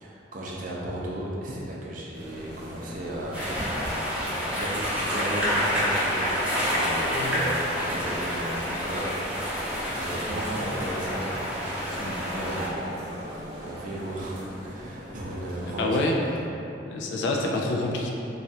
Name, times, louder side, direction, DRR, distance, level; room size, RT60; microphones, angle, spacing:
voice 1, 0.0-6.4 6.7-9.2 9.7-16.2, right 1 dB, 50° right, -4 dB, 0.5 m, -35 dB
sound 1, 2.1-15.8, equal, 65° right, 0.8 m, -41 dB
sound 2, 3.3-12.7, equal, 5° right, 0.6 m, -28 dB
voice 2, 15.8-16.2 16.9-18.1, left 2 dB, 75° left, 0 dB, 0.3 m, -27 dB
3.1 x 2.3 x 2.7 m, 2.9 s
head